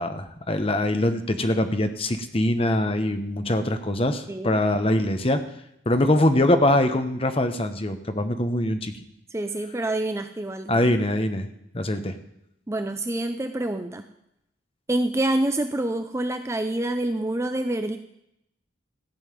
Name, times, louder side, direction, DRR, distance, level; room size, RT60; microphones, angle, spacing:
voice 1, 0.0-5.4 5.9-8.9 10.7-11.5 11.7-12.1, left 1 dB, 30° left, 8 dB, 1.0 m, -23 dB
voice 2, 9.3-10.9 12.7-14.1 14.9-18.0, right 1 dB, 15° right, 7 dB, 0.5 m, -27 dB
15.0 x 5.5 x 9.3 m, 0.80 s
head